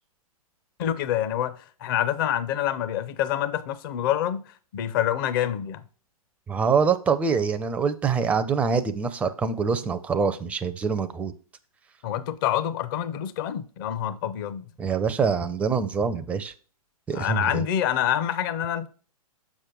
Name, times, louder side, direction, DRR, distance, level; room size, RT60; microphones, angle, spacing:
voice 1, 0.8-4.4 4.7-5.8 12.0-14.7 17.1-18.9, left 10 dB, 35° left, 0.6 m, -26 dB
voice 2, 6.5-11.3 14.8-16.5 17.1-17.6, right 5 dB, 5° right, 0.4 m, -25 dB
6.4 x 6.1 x 3.8 m
figure-of-eight pair, 120°, 19 cm